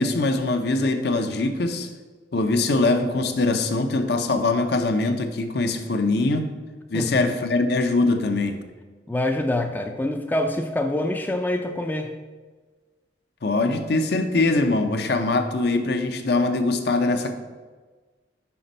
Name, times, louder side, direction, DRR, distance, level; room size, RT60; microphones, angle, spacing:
voice 1, 0.0-1.9 2.3-6.5 6.9-8.6 13.4-17.3, left 2 dB, 60° left, 7 dB, 0.6 m, -22 dB
voice 2, 6.9-7.3 9.1-12.1, left 1 dB, 10° left, 5 dB, 0.3 m, -25 dB
5.7 x 5.0 x 5.3 m, 1.4 s
head